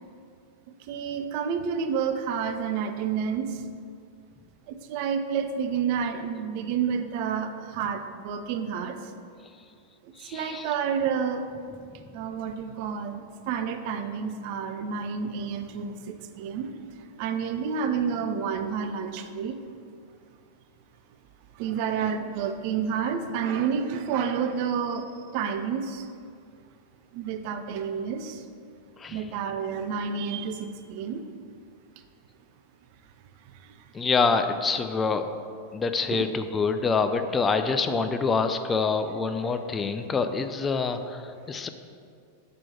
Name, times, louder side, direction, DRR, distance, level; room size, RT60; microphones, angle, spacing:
voice 1, 0.9-3.6 4.7-9.0 10.3-11.4 12.1-16.8 17.2-19.6 21.6-25.1 25.3-26.1 27.1-28.4 29.1-31.2 36.1-36.2, right 7 dB, 45° right, 8 dB, 0.5 m, -29 dB
voice 2, 10.2-10.7 29.0-29.2 33.9-35.3 35.7-41.7, left 4 dB, 20° left, 8 dB, 0.3 m, -26 dB
6.2 x 4.4 x 5.6 m, 2.3 s
figure-of-eight pair, 90°, 0 cm